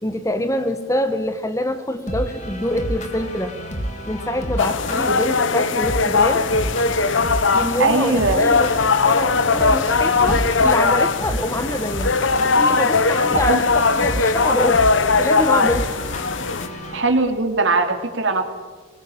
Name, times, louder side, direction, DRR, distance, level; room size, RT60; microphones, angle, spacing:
voice 1, 0.0-3.5 4.1-6.5 7.5-12.1 12.5-14.9 15.2-15.9 16.3-16.6, left 1 dB, 15° left, 9 dB, 1.4 m, -25 dB
sound 1, 2.1-17.0, equal, 35° left, 3.3 m, -31 dB
sound 2, 4.6-16.7, left 4 dB, 70° left, 1.0 m, -19 dB
voice 2, 7.8-8.5 13.4-13.6 16.9-18.4, right 3 dB, 70° right, 5 dB, 3.1 m, -20 dB
Wind, 8.1-17.6, equal, 45° right, 2.9 m, -39 dB
24.0 x 22.0 x 8.8 m, 1.3 s
head